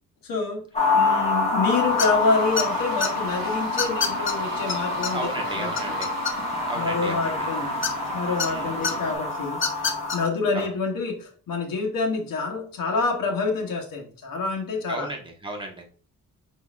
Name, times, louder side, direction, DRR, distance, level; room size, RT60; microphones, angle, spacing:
voice 1, 0.2-0.7 0.9-5.7 6.7-7.8 8.1-15.1, left 4 dB, 80° left, 1.0 m, -27 dB
sound 1, 0.7-10.2, left 3 dB, 20° left, 1.2 m, -27 dB
sound 2, 1.8-9.1, right 7 dB, 90° right, 0.6 m, -39 dB
sound 3, 2.0-2.2 2.6-3.1 3.8-4.3 4.7-4.8 5.0-5.1 5.5-6.6 7.8-8.5 8.8-8.9 9.5-10.2, left 5 dB, 35° left, 0.6 m, -26 dB
voice 2, 5.1-6.1 6.6-7.5 8.4-9.1 10.5-10.7 14.9-15.9, right 1 dB, 15° right, 1.2 m, -35 dB
5.0 x 3.8 x 2.4 m
cardioid pair, 110°, 34 cm